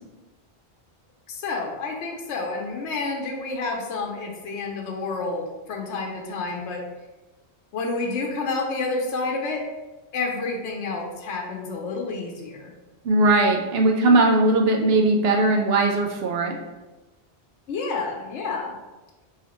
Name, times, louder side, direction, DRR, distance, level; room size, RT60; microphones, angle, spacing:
voice 1, 1.3-6.8 7.7-9.7 10.1-12.7 17.7-18.7, left 3 dB, 85° left, 1 dB, 1.0 m, -29 dB
voice 2, 13.1-16.5, right 2 dB, 65° right, 2 dB, 0.8 m, -19 dB
4.8 x 2.8 x 3.0 m, 1.1 s
omnidirectional pair, 1.1 m